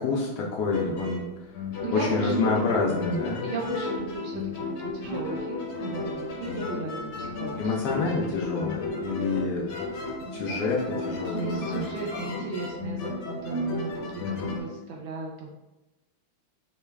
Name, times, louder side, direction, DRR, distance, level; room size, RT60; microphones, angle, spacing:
voice 1, 0.0-1.5 1.9-3.5 7.6-9.8 10.3-10.8 11.0-11.9 14.2-14.6, left 4 dB, 85° left, -2 dB, 0.9 m, -28 dB
sound 1, 0.7-14.6, left 2 dB, 70° left, 1.4 m, -33 dB
voice 2, 1.8-2.8 3.4-7.7 8.4-8.5 9.7-9.8 10.1-10.7 11.2-15.5, right 3 dB, 80° right, -1 dB, 1.4 m, -36 dB
5.1 x 2.3 x 3.2 m, 1.0 s
omnidirectional pair, 2.4 m